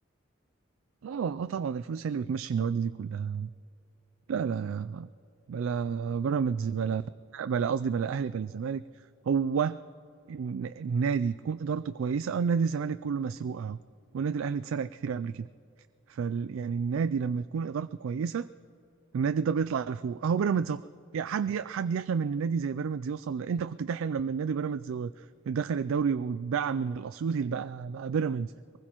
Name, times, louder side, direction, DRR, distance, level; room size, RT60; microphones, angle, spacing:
voice 1, 1.0-3.5 4.3-5.1 5.5-7.0 7.3-8.8 9.3-9.8 10.3-13.8 14.1-15.5 16.1-18.5 19.1-20.8 21.1-28.8, right 6 dB, 85° right, 13 dB, 0.3 m, -30 dB
23.0 x 20.0 x 3.0 m, 2.6 s
head